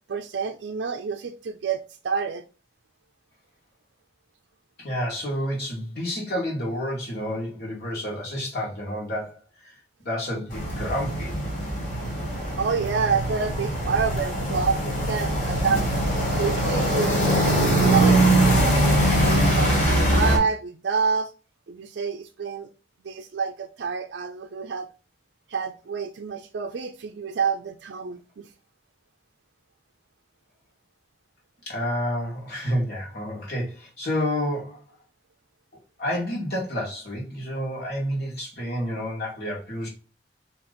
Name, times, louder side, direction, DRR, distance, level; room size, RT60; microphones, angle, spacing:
voice 1, 0.1-2.4 12.6-15.8 16.3-21.3 21.7-22.7 23.0-24.9 25.5-28.5, right 5 dB, 70° right, 0.4 m, -28 dB
voice 2, 4.8-9.4 10.0-11.4 31.6-34.8 36.0-39.9, equal, 60° left, 1.7 m, -29 dB
sound 1, 10.5-20.4, right 1 dB, 40° left, 1.5 m, -22 dB
4.2 x 2.9 x 3.9 m
head